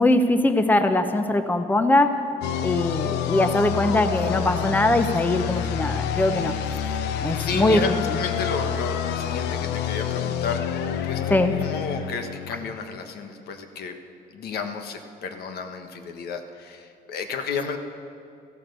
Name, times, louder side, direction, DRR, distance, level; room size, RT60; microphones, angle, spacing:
voice 1, 0.0-2.1 2.6-6.6 7.2-7.8 11.3-11.5, left 2 dB, 10° left, 8 dB, 0.8 m, -21 dB
sound 1, 2.4-13.0, left 9 dB, 90° left, 0.8 m, -28 dB
voice 2, 7.3-11.2 11.6-13.9 14.3-17.8, left 5 dB, 70° left, 6 dB, 1.5 m, -32 dB
15.0 x 13.5 x 6.8 m, 2.5 s
cardioid pair, 110°, 17 cm